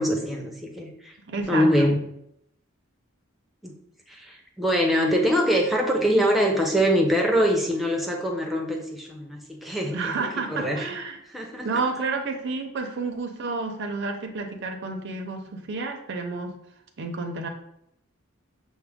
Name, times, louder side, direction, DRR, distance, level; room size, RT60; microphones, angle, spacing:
voice 1, 0.0-1.1 1.5-2.0 3.6-3.7 4.1-10.8 11.3-11.7, equal, ahead, 0 dB, 0.6 m, -23 dB
voice 2, 1.2-1.9 9.9-11.2 11.6-16.5 17.0-17.5, right 3 dB, 60° right, 3 dB, 0.5 m, -30 dB
5.9 x 2.1 x 3.5 m, 0.77 s
head